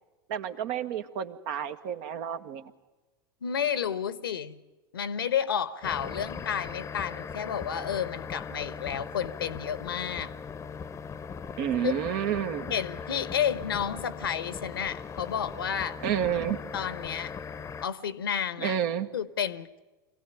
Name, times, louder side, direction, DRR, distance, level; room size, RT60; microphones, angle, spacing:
voice 1, 0.3-2.7 11.6-12.7 16.0-16.6 18.6-19.1, right 9 dB, 55° right, 8 dB, 1.5 m, -30 dB
voice 2, 3.4-4.6 4.9-10.3 11.8-11.9 12.7-16.0 16.7-17.3 17.8-18.8 19.1-19.8, left 8 dB, 80° left, 16 dB, 1.1 m, -31 dB
sound 1, 5.8-17.9, left 6 dB, 25° left, 0.9 m, -39 dB
25.5 x 17.0 x 10.0 m, 1.2 s
hypercardioid pair, 90°, 12 cm